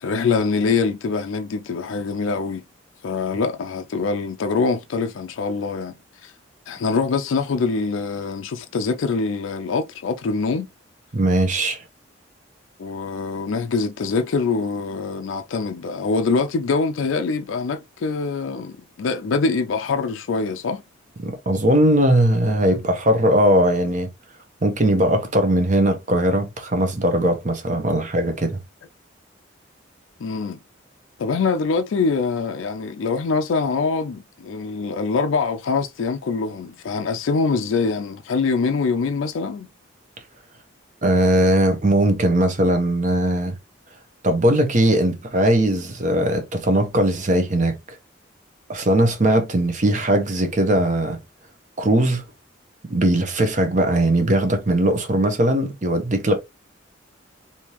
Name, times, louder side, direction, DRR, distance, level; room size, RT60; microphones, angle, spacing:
voice 1, 0.0-2.6 3.0-6.3 6.7-10.7 12.8-20.8 30.2-30.6 31.2-39.7, left 4 dB, 80° left, 0.4 m, -24 dB
voice 2, 11.1-11.8 21.2-24.1 24.6-28.6 41.0-43.6 44.2-48.0 48.7-51.2 51.8-52.2 52.9-56.4, right 1 dB, 40° right, 0.8 m, -19 dB
3.5 x 2.8 x 2.9 m
head